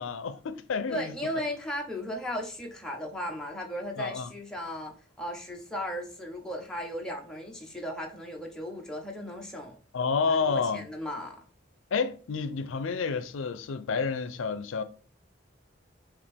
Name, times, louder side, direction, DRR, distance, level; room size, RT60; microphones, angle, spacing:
voice 1, 0.0-1.2 4.0-4.3 9.9-10.8 11.9-14.8, left 5 dB, 85° left, 0.5 m, -29 dB
voice 2, 0.9-9.8 10.3-11.4, equal, 5° left, 0.9 m, -36 dB
5.1 x 3.0 x 3.3 m
head